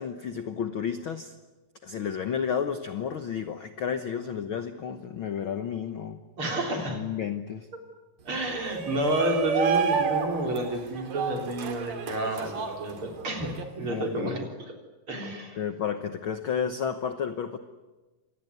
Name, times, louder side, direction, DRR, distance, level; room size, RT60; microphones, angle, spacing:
voice 1, 0.0-1.4 1.8-6.2 6.9-7.7 13.9-14.3 15.6-17.6, left 7 dB, 75° left, 9 dB, 1.1 m, -31 dB
voice 2, 6.4-7.0 8.2-14.8 15.1-15.6, right 1 dB, 40° right, 3 dB, 4.3 m, -30 dB
Shout, 8.5-13.6, right 5 dB, 65° right, 3.9 m, -29 dB
26.0 x 19.5 x 9.5 m, 1.2 s
omnidirectional pair, 4.0 m